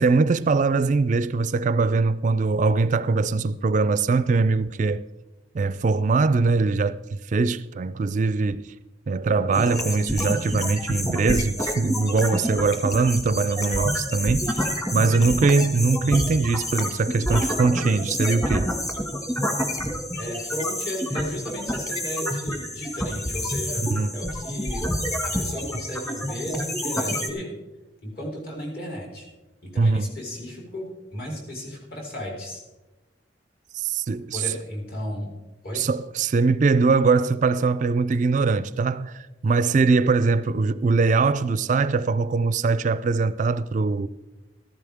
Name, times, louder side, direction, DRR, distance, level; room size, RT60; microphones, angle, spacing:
voice 1, 0.0-5.0 5.5-8.7 9.1-14.6 14.9-18.7 23.9-24.1 29.8-30.1 33.7-34.4 35.7-44.1, right 4 dB, 40° right, 0.3 m, -22 dB
sound 1, 9.5-27.3, equal, 20° left, 1.7 m, -28 dB
voice 2, 20.1-23.8 24.1-24.9 25.2-27.6 28.0-29.3 29.6-32.6 34.3-35.3 35.6-35.8, equal, 55° left, 4.1 m, -34 dB
14.5 x 13.5 x 3.5 m
head